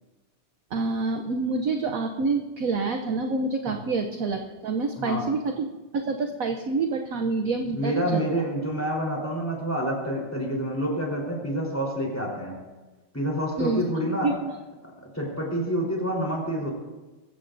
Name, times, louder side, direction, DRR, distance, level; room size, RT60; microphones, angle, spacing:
voice 1, 0.7-8.3 13.6-13.8 14.2-14.5, right 3 dB, 60° right, 4 dB, 0.9 m, -27 dB
voice 2, 7.6-12.5 13.1-14.3 14.8-16.7, equal, 5° left, -3 dB, 3.8 m, -28 dB
22.0 x 15.0 x 2.6 m, 1.2 s
omnidirectional pair, 2.3 m